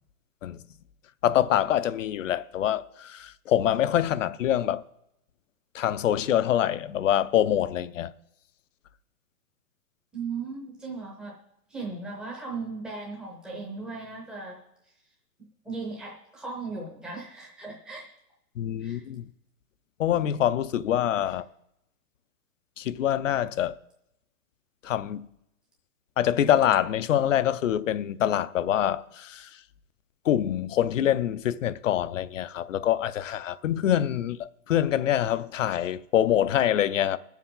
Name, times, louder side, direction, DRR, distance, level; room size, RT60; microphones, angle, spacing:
voice 1, 1.2-4.8 5.7-8.1 18.6-19.2 20.0-21.4 22.8-23.8 24.8-25.3 26.2-29.5 30.3-37.2, left 11 dB, 55° left, 0.6 m, -25 dB
voice 2, 10.1-11.3 11.7-14.6 15.6-18.1 18.8-19.0, right 4 dB, ahead, 0.7 m, -37 dB
21.0 x 7.3 x 3.8 m
hypercardioid pair, 165°, 46 cm